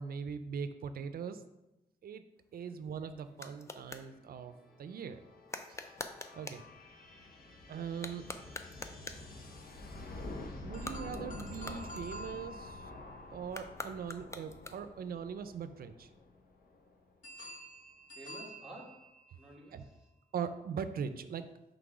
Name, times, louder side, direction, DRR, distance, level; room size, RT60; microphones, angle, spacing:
voice 1, 0.0-1.4 2.0-2.3 2.5-5.2 5.7-5.9 6.3-6.6 7.7-8.3 10.6-12.8 13.3-16.1 19.7-19.8 20.3-21.5, right 7 dB, 75° right, 11 dB, 0.4 m, -41 dB
sound 1, 2.4-4.1 5.5-6.7 7.9-9.3 10.7-12.5 13.5-15.1, left 2 dB, 20° left, 0.4 m, -46 dB
sound 2, 3.8-17.2, left 2 dB, 75° left, 0.9 m, -49 dB
sound 3, 10.7-14.8 17.2-19.6, right 1 dB, 55° left, 1.2 m, -50 dB
voice 2, 18.1-20.1, right 1 dB, 5° right, -4 dB, 1.3 m, -52 dB
6.0 x 3.3 x 4.9 m, 0.94 s
wide cardioid pair, 160°, 16 cm